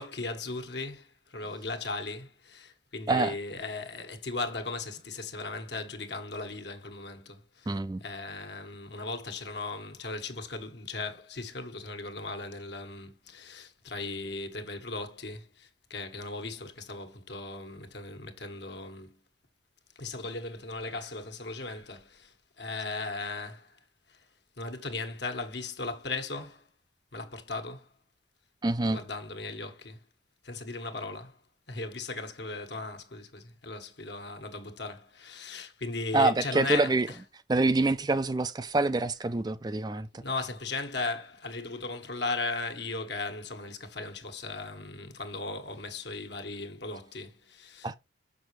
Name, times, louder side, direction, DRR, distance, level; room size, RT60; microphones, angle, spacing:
voice 1, 0.0-19.2 19.9-23.8 24.1-24.2 24.6-26.6 27.1-27.9 28.9-30.0 30.4-31.4 31.7-36.9 40.2-48.0, left 3 dB, 65° left, 1.5 m, -37 dB
voice 2, 3.1-3.4 7.7-8.0 28.6-29.0 36.1-37.1 37.5-40.2 47.8-47.9, right 2 dB, 20° right, 0.4 m, -26 dB
6.8 x 6.2 x 3.2 m
head